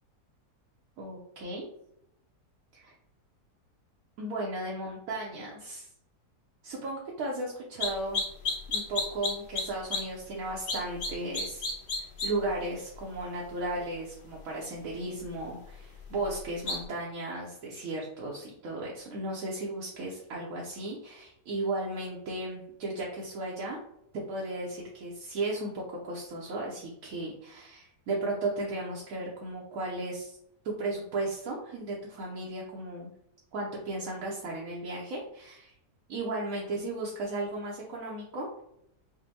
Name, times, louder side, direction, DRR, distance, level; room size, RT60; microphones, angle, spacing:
voice 1, 1.0-1.7 2.7-2.9 4.2-5.9 6.6-8.2 8.7-11.6 12.0-23.8 24.1-30.4 30.6-33.1 33.5-35.7 36.1-38.5, right 2 dB, 65° right, -3 dB, 1.0 m, -35 dB
sound 1, 7.8-9.6 9.9-10.0 10.7-11.1 11.3-12.3 16.7-16.8, left 3 dB, 90° left, 1.6 m, -29 dB
5.1 x 2.1 x 2.7 m, 0.78 s
omnidirectional pair, 1.7 m